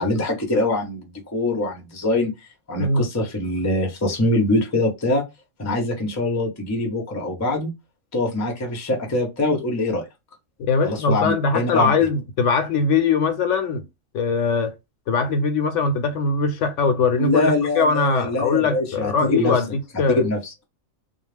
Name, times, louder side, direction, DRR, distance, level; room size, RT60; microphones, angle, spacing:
voice 1, 0.0-2.3 2.7-5.2 5.6-7.7 8.1-10.0 10.8-11.9 17.2-19.5 20.1-20.4, left 2 dB, 20° left, 0.5 m, -23 dB
voice 2, 10.7-13.9 14.1-14.7 15.1-20.2, left 4 dB, 70° left, 0.9 m, -21 dB
2.3 x 2.0 x 3.2 m
omnidirectional pair, 1.3 m